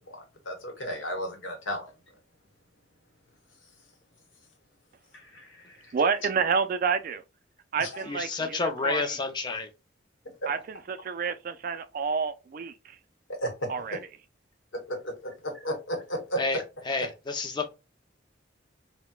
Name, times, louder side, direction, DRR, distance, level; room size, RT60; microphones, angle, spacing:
voice 1, 0.1-1.9 5.1-5.9 7.8-8.0 13.3-13.7 14.9-16.4, equal, 90° left, 1.1 m, -34 dB
voice 2, 5.9-7.2 7.7-9.1 10.5-13.0 13.7-14.0, right 5 dB, 45° right, 0.3 m, -29 dB
voice 3, 8.0-9.7 16.4-16.6 16.9-17.7, left 3 dB, 25° left, 0.4 m, -30 dB
4.1 x 2.1 x 2.3 m
head